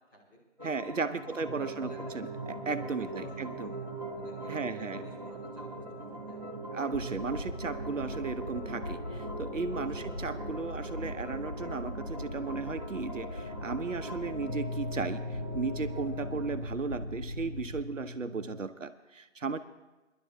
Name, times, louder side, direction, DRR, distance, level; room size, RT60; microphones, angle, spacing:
voice 1, 0.1-2.1 3.1-3.6 4.1-5.7 5.9-6.4 9.9-10.1 16.3-16.5, equal, 15° left, -5 dB, 2.1 m, -52 dB
sound 1, 0.6-18.6, left 1 dB, 35° right, 0.4 m, -43 dB
voice 2, 0.6-3.7 4.5-5.0 6.7-19.6, right 4 dB, 85° right, 10 dB, 1.0 m, -35 dB
sound 2, 1.4-16.6, right 2 dB, 15° right, 1.5 m, -42 dB
sound 3, 6.9-17.8, left 1 dB, 40° left, 0.6 m, -41 dB
25.0 x 11.5 x 2.8 m, 1.1 s
figure-of-eight pair, 170°, 37 cm